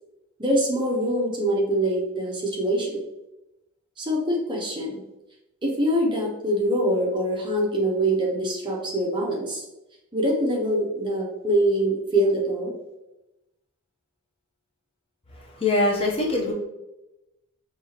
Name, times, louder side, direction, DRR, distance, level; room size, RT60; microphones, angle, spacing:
voice 1, 0.4-3.0 4.0-5.0 5.6-9.6 10.1-12.7, right 1 dB, 20° right, -2 dB, 0.7 m, -24 dB
voice 2, 15.6-16.5, left 2 dB, 25° left, -2 dB, 0.6 m, -22 dB
5.4 x 2.8 x 2.8 m, 0.95 s
head